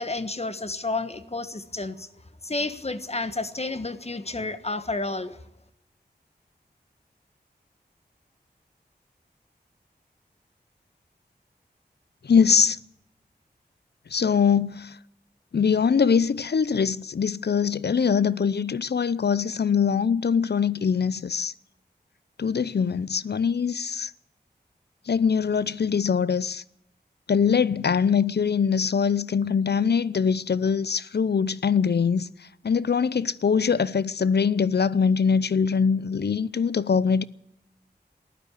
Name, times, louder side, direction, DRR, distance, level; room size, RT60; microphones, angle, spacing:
voice 1, 0.0-2.1 2.4-5.4, left 2 dB, 35° left, 1.4 m, -31 dB
voice 2, 12.3-12.8 14.1-14.9 15.5-21.5 22.4-24.1 25.1-26.6 27.3-32.3 32.6-37.2, left 6 dB, 70° left, 0.6 m, -23 dB
14.5 x 11.5 x 8.4 m
wide cardioid pair, 50°, 18 cm